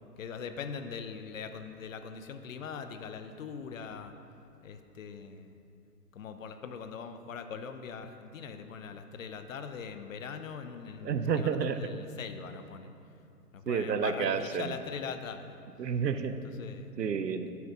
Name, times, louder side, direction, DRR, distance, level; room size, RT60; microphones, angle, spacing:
voice 1, 0.2-4.1 4.6-5.6 6.1-12.9 13.5-15.6 16.4-16.9, left 6 dB, 55° left, 8 dB, 0.6 m, -41 dB
voice 2, 11.0-11.8 13.7-14.8 15.8-16.4 16.6-17.5, right 6 dB, 80° right, 10 dB, 0.7 m, -30 dB
8.3 x 4.4 x 6.8 m, 2.6 s
figure-of-eight pair, 130°, 49 cm